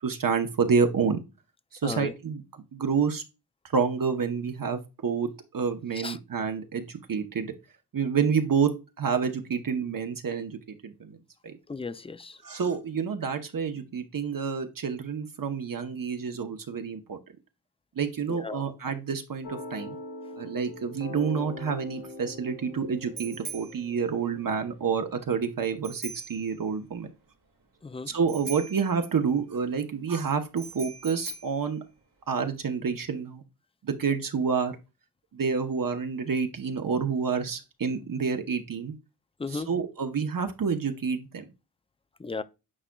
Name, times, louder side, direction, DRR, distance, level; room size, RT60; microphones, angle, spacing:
voice 1, 0.0-1.2 1.8-2.4 2.7-3.2 3.7-7.5 7.9-8.7 9.0-11.2 11.4-11.6 12.4-17.2 18.0-20.0 20.4-27.1 28.1-31.8 32.3-33.4 33.8-34.8 35.3-38.9 39.5-41.4, right 6 dB, 55° right, 0.9 m, -28 dB
voice 2, 11.7-12.4 18.3-18.6 27.8-28.1 39.4-39.7 42.2-42.4, left 4 dB, 15° left, 0.3 m, -35 dB
sound 1, 19.4-24.9, left 2 dB, 80° left, 1.8 m, -42 dB
Bicycle bell, 21.5-32.6, right 3 dB, 80° right, 1.8 m, -45 dB
8.7 x 4.9 x 2.2 m
wide cardioid pair, 90°, 39 cm